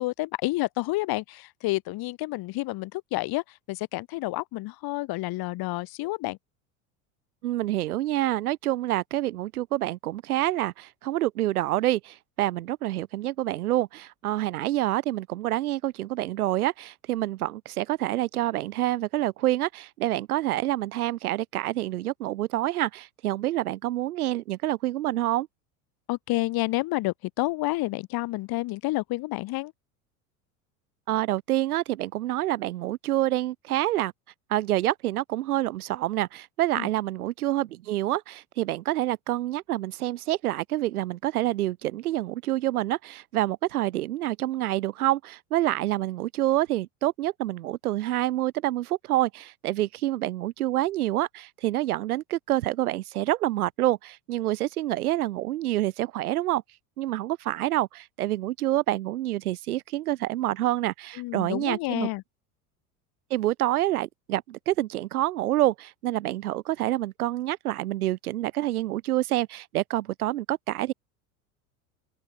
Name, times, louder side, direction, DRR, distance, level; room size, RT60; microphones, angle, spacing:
voice 1, 0.0-6.4 26.1-29.7 36.8-36.9 61.2-62.2, left 20 dB, 55° left, 6.2 m, -29 dB
voice 2, 7.4-25.5 31.1-34.1 34.5-56.6 57.0-62.1 63.3-70.9, right 15 dB, 75° right, 6.2 m, -27 dB
open air
hypercardioid pair, 85°, 45 cm